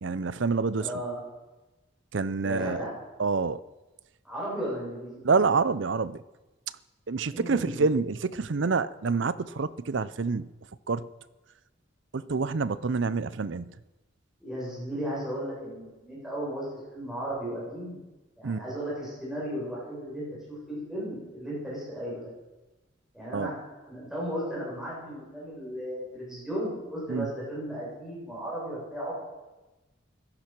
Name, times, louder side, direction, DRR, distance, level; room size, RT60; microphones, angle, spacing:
voice 1, 0.0-0.9 2.1-2.8 3.2-3.6 5.2-6.2 7.1-10.5 10.9-11.1 12.1-13.7 18.4-18.6 23.3-23.5 27.1-27.3, right 4 dB, 70° right, 16 dB, 0.6 m, -27 dB
voice 2, 0.8-1.2 2.4-2.9 4.2-5.2 7.2-8.0 14.4-16.7 16.9-18.0 18.4-22.3 23.1-29.1, equal, ahead, -7 dB, 7.3 m, -35 dB
16.5 x 11.5 x 6.1 m, 1.1 s
head